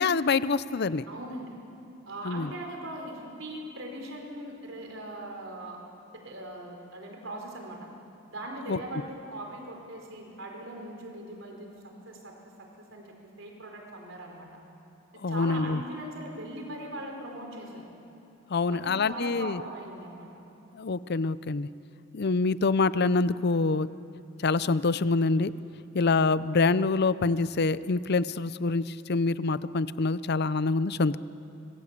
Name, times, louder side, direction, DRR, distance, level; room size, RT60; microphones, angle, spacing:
voice 1, 0.0-1.0 2.2-2.5 8.7-8.8 15.2-15.8 18.5-19.6 20.7-21.7 22.1-23.9 24.4-25.5 25.9-31.2, left 3 dB, 55° left, 16 dB, 0.6 m, -26 dB
voice 2, 1.1-1.5 2.1-5.8 6.2-7.9 8.3-14.5 15.1-17.9 18.7-20.3, right 1 dB, 70° right, 2 dB, 4.8 m, -40 dB
25.5 x 19.5 x 8.4 m, 2.9 s
head